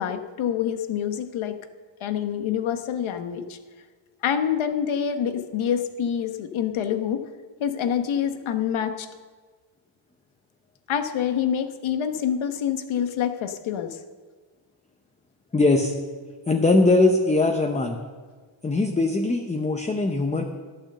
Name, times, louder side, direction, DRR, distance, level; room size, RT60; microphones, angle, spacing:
voice 1, 0.0-1.5 2.0-3.6 4.2-7.2 7.6-9.1 10.9-14.0, left 8 dB, 70° left, 8 dB, 1.1 m, -26 dB
voice 2, 15.5-15.9 16.5-18.0 18.6-20.4, left 2 dB, 15° left, 3 dB, 0.7 m, -21 dB
12.5 x 9.0 x 6.6 m, 1.5 s
wide cardioid pair, 160°, 50 cm